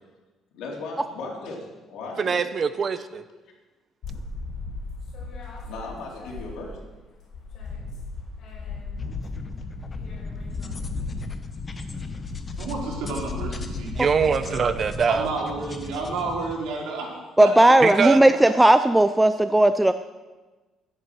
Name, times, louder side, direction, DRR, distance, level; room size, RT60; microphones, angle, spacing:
voice 1, 0.5-2.4 5.7-6.8, left 3 dB, 80° left, -2 dB, 3.9 m, -36 dB
voice 2, 2.2-3.2 14.0-15.3 17.8-18.2, right 6 dB, 35° right, 12 dB, 0.8 m, -23 dB
sound 1, 4.0-6.9 7.2-14.9, left 3 dB, 55° left, 5.9 m, -36 dB
sound 2, 9.0-16.5, left 3 dB, 25° left, 1.0 m, -38 dB
voice 3, 12.6-13.9 14.4-14.6 15.1-17.1 17.4-17.5 18.0-18.1 18.5-18.6, right 4 dB, 85° right, -2 dB, 4.2 m, -30 dB
voice 4, 17.4-19.9, right 1 dB, 10° right, 10 dB, 0.4 m, -16 dB
13.0 x 10.0 x 6.4 m, 1.2 s
cardioid pair, 140°, 0 cm